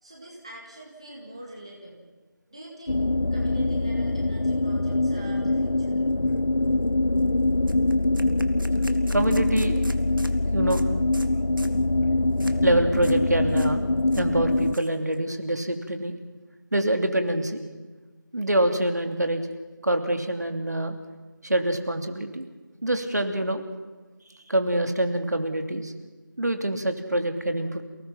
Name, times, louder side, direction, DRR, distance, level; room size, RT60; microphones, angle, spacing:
voice 1, 0.0-2.0 2.5-3.0 3.3-6.0, right 1 dB, 15° right, -2 dB, 2.1 m, -44 dB
sound 1, 2.9-14.7, left 2 dB, 65° left, 0.7 m, -24 dB
sound 2, 6.3-6.4 6.7-6.9 7.2-7.3 7.7-10.4 10.7-10.9 11.1-11.3 11.6-11.8 12.4-12.6 12.9-13.2 13.5-13.7 14.0-15.2, right 1 dB, 75° right, 2.3 m, -44 dB
voice 2, 9.1-9.8 10.5-10.8 12.6-13.8 14.2-16.2 16.7-17.6 18.3-19.4 19.8-21.0 21.4-22.5 22.8-23.6 24.5-25.9 26.4-27.8, right 1 dB, 55° right, 6 dB, 2.9 m, -25 dB
29.0 x 19.0 x 5.8 m, 1.3 s
figure-of-eight pair, 180°, 11 cm